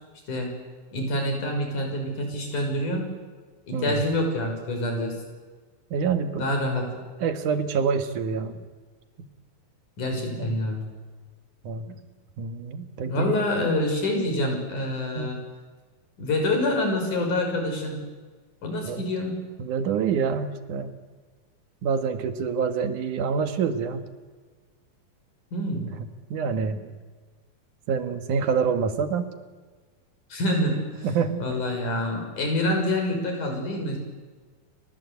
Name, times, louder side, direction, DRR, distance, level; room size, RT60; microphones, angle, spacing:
voice 1, 0.9-3.1 3.7-5.2 6.3-6.9 10.0-10.8 13.1-15.4 16.2-18.0 18.6-19.3 25.5-25.9 30.3-30.8 31.4-34.0, left 1 dB, 90° left, 3 dB, 7.7 m, -26 dB
voice 2, 5.9-6.5 7.2-8.6 9.2-9.3 10.4-10.6 11.6-12.0 12.4-13.4 15.2-15.4 18.9-19.0 19.6-21.0 21.8-24.1 25.7-25.9 26.3-26.9 27.9-29.2 31.0-31.6, right 6 dB, 90° right, 8 dB, 3.3 m, -27 dB
29.0 x 24.5 x 8.3 m, 1.4 s
omnidirectional pair, 3.4 m